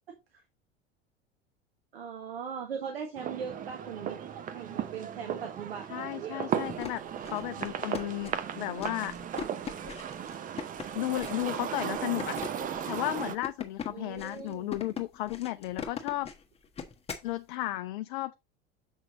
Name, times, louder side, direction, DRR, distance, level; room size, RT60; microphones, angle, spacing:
voice 1, 1.9-4.2 4.5-6.5 13.9-14.7, right 7 dB, 70° right, 1.5 m, -39 dB
sound 1, 3.2-13.4, right 9 dB, 25° right, 0.8 m, -36 dB
voice 2, 5.9-9.1 10.9-12.4 12.9-16.3 17.2-18.3, left 16 dB, 55° left, 0.5 m, -34 dB
sound 2, 6.6-17.3, left 6 dB, 20° left, 1.3 m, -41 dB
7.2 x 5.9 x 3.0 m
figure-of-eight pair, 75°, 31 cm